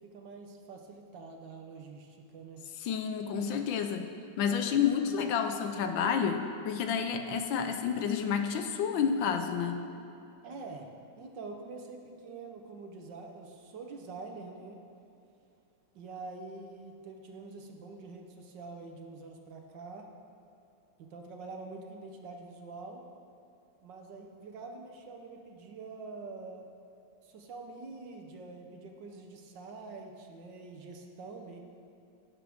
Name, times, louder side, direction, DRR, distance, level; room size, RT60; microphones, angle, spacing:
voice 1, 0.0-2.7 10.4-14.8 15.9-20.1 21.0-23.0 23.8-26.7 27.2-31.6, right 3 dB, 65° right, 3 dB, 1.5 m, -45 dB
voice 2, 2.8-4.1 4.4-9.8, left 7 dB, 75° left, 6 dB, 1.3 m, -30 dB
17.0 x 7.6 x 3.5 m, 2.7 s
omnidirectional pair, 2.2 m